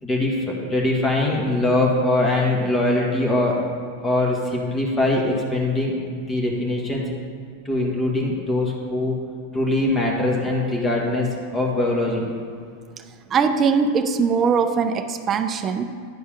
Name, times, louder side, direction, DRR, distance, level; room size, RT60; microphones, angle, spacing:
voice 1, 0.0-3.6 4.0-7.0 7.6-9.1 9.5-12.2, left 2 dB, 20° left, -1 dB, 1.7 m, -22 dB
voice 2, 13.3-15.8, right 5 dB, 30° right, 9 dB, 0.6 m, -21 dB
10.0 x 5.3 x 5.2 m, 2.1 s
hypercardioid pair, 105°, 0 cm